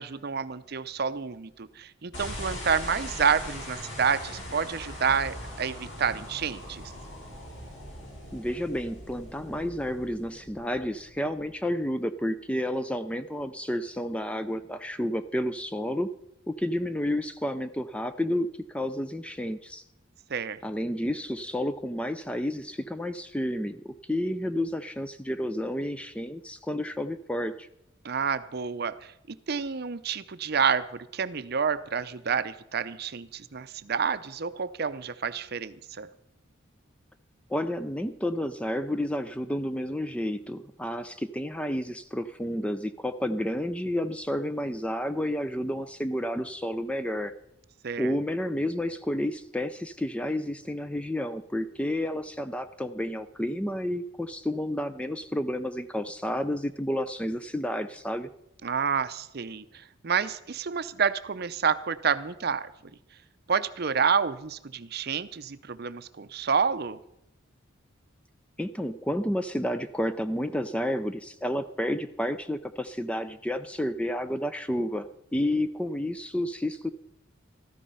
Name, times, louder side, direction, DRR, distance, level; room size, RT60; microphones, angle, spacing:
voice 1, 0.0-6.9 20.3-20.6 28.0-36.1 47.8-48.1 58.6-62.7 63.5-67.0, right 6 dB, 50° right, 13 dB, 0.6 m, -29 dB
sound 1, 2.1-11.5, left 1 dB, 65° left, 6.1 m, -41 dB
voice 2, 8.3-16.1 16.5-19.8 20.6-27.7 37.5-47.3 48.0-58.3 68.6-76.9, left 1 dB, 5° left, 11 dB, 0.4 m, -30 dB
13.5 x 13.5 x 5.5 m, 0.82 s
head